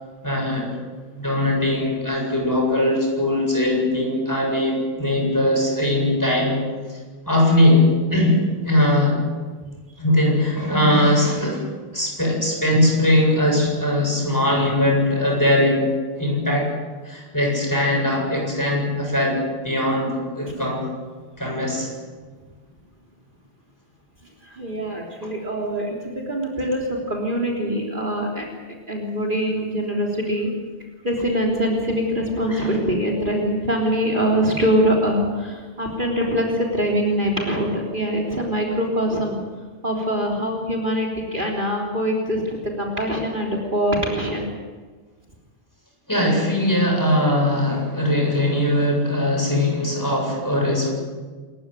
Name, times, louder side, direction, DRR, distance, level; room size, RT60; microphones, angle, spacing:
voice 1, 0.2-0.7 1.2-6.6 7.3-9.2 10.0-11.6 11.9-16.7 17.0-20.8 21.4-21.9 32.5-32.7 46.1-50.9, left 1 dB, 15° left, 0 dB, 7.7 m, -20 dB
voice 2, 24.2-28.5 28.9-30.5 31.0-39.4 39.8-44.5, equal, 45° right, -1 dB, 3.8 m, -23 dB
28.0 x 15.5 x 9.3 m, 1.4 s
omnidirectional pair, 1.2 m